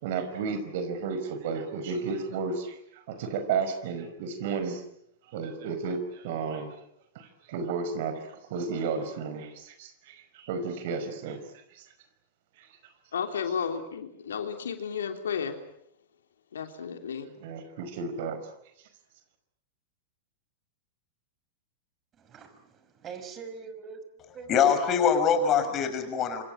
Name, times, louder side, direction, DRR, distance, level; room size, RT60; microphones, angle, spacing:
voice 1, 0.0-2.8 3.1-4.8 5.3-6.7 7.1-8.2 8.5-11.4 11.7-11.8 12.6-12.7 17.4-18.4, right 5 dB, 60° right, 10 dB, 5.2 m, -32 dB
voice 2, 13.1-15.6 16.5-17.3, left 7 dB, 75° left, 6 dB, 3.2 m, -33 dB
voice 3, 22.2-24.0 24.3-25.1, right 6 dB, 30° right, 9 dB, 5.7 m, -42 dB
voice 4, 24.5-26.4, left 7 dB, 35° left, 9 dB, 5.6 m, -23 dB
27.0 x 26.0 x 7.6 m, 0.74 s
hypercardioid pair, 100°, 0 cm